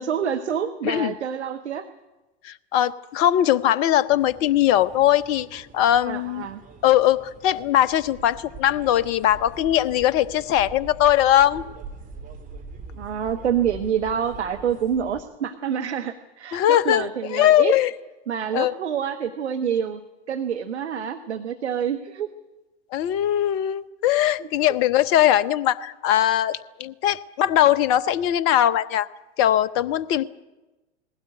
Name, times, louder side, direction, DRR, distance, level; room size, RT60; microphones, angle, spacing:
voice 1, 0.0-1.8 6.1-6.6 13.0-17.7 18.3-20.0 20.3-22.3 24.4-24.5, right 8 dB, 75° right, 9 dB, 1.2 m, -27 dB
voice 2, 2.4-6.5 6.8-11.6 16.5-17.9 18.5-18.7 22.9-29.1 29.4-30.2, left 12 dB, 40° left, 15 dB, 0.9 m, -20 dB
sound 1, 4.1-15.2, right 3 dB, 25° right, 3.2 m, -43 dB
20.0 x 17.0 x 9.6 m, 1.1 s
figure-of-eight pair, 90°, 34 cm